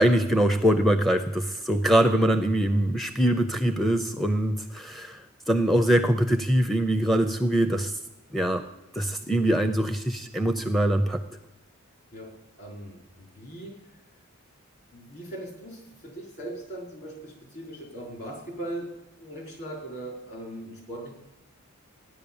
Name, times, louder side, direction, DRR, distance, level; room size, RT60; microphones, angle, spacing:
voice 1, 0.0-7.9 8.3-8.6 8.9-11.2, right 1 dB, ahead, 6 dB, 0.5 m, -23 dB
voice 2, 12.6-13.8 14.9-18.9 19.2-21.1, right 1 dB, 50° left, 0 dB, 4.7 m, -39 dB
15.0 x 10.5 x 7.1 m, 0.95 s
head